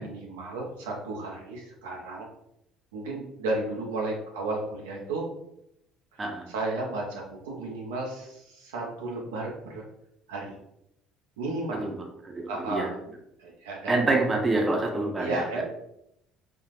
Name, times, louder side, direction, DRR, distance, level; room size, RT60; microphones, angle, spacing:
voice 1, 0.0-2.3 2.9-5.2 6.1-6.2 6.5-9.8 10.3-10.6 11.4-11.9 12.5-12.9 13.4-14.0 15.2-15.6, right 2 dB, 80° right, -2 dB, 0.6 m, -33 dB
voice 2, 12.2-12.9 13.9-15.6, right 2 dB, 25° right, 1 dB, 0.7 m, -27 dB
3.5 x 2.4 x 2.4 m, 0.79 s
hypercardioid pair, 60°, 0 cm